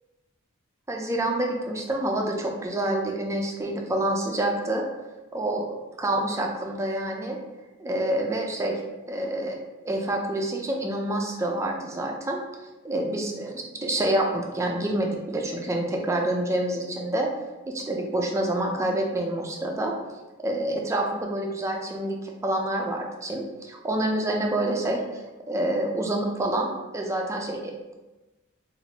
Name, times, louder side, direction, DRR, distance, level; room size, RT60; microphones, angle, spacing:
voice 1, 0.9-4.8 5.3-7.4 7.8-8.7 9.1-9.6 9.8-12.4 12.8-13.5 13.8-17.3 17.7-19.9 20.4-25.2 25.5-26.7 26.9-27.9, right 1 dB, 15° right, 1 dB, 0.3 m, -27 dB
2.5 x 2.4 x 3.2 m, 1.1 s
head